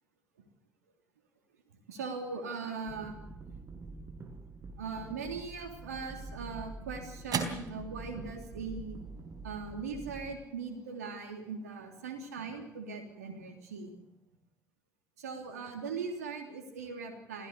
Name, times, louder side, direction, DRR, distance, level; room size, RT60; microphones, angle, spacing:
voice 1, 1.9-3.2 4.8-9.0 9.4-13.9 15.2-17.5, right 4 dB, 85° right, 4 dB, 3.3 m, -40 dB
sound 1, 2.9-10.4, right 3 dB, 30° right, 4.9 m, -46 dB
sound 2, 6.0-14.6, right 6 dB, 50° right, 4.0 m, -44 dB
25.5 x 17.0 x 6.9 m, 0.81 s
hypercardioid pair, 55°, 8 cm